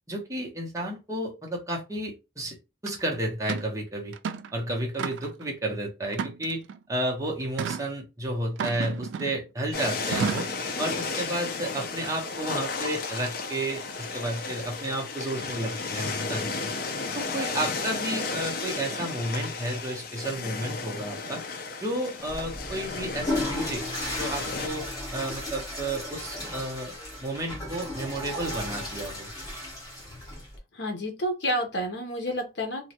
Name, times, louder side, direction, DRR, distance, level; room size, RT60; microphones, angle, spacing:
voice 1, 0.1-2.6 2.8-4.1 4.5-6.6 6.9-10.5 10.8-16.7 17.1-21.4 21.8-23.8 24.2-24.9 25.1-26.9 27.2-29.3, right 1 dB, 20° right, 0.8 m, -32 dB
sound 1, 2.9-3.0 3.5-3.7 4.1-4.5 5.0-5.4 6.1-6.8 7.6-7.9 8.6-9.5 10.1-10.6, right 6 dB, 85° right, 0.3 m, -32 dB
sound 2, 9.7-24.7, left 4 dB, 55° left, 0.5 m, -34 dB
Water / Toilet flush, 22.2-30.6, left 1 dB, 20° left, 1.3 m, -35 dB
voice 2, 30.7-32.9, equal, 75° left, 0.8 m, -30 dB
3.0 x 2.2 x 2.8 m
head